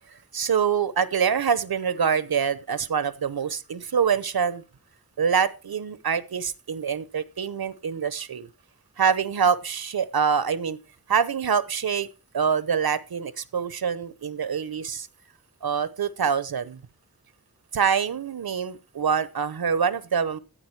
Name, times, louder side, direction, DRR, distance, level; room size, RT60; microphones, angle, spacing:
voice 1, 0.1-4.6 5.2-8.5 9.0-10.8 11.1-12.1 12.3-15.1 15.6-16.8 17.7-20.4, right 7 dB, 85° right, 15 dB, 0.8 m, -25 dB
14.0 x 8.8 x 4.6 m, 0.32 s
wide cardioid pair, 65°, 36 cm